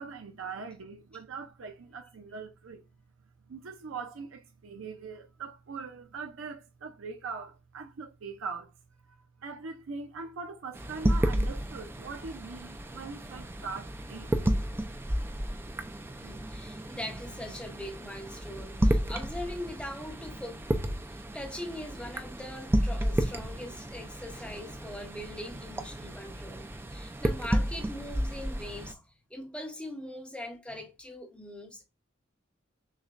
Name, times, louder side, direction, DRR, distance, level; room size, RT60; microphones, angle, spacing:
voice 1, 0.0-2.8 3.5-8.7 9.4-14.3, right 5 dB, 80° right, 0.5 m, -41 dB
sound 1, 10.7-28.9, right 1 dB, 10° right, 0.4 m, -32 dB
voice 2, 16.2-20.6 21.1-29.0 29.3-31.8, left 1 dB, 5° left, 0.9 m, -41 dB
6.3 x 2.2 x 2.4 m
head